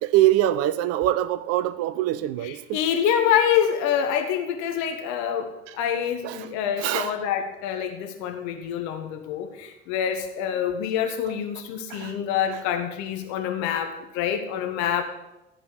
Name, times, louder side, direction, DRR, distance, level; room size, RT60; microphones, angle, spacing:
voice 1, 0.0-2.8 5.7-5.8 6.2-6.5 6.8-7.1 11.3-11.4 11.9-12.2, right 14 dB, 40° right, 15 dB, 0.5 m, -24 dB
voice 2, 2.4-15.0, left 9 dB, 55° left, 5 dB, 1.5 m, -26 dB
15.0 x 5.0 x 6.5 m, 0.94 s
figure-of-eight pair, 65°, 36 cm